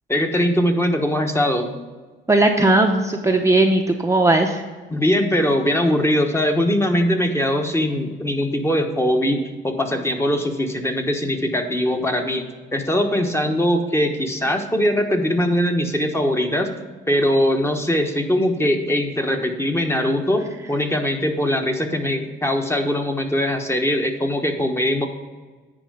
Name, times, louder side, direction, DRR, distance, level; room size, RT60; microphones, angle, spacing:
voice 1, 0.1-1.7 4.9-12.5 12.7-25.1, equal, 15° left, 4 dB, 1.1 m, -21 dB
voice 2, 2.3-4.6, right 2 dB, 15° right, 2 dB, 0.7 m, -17 dB
10.0 x 4.5 x 6.6 m, 1.3 s
cardioid pair, 90°, 20 cm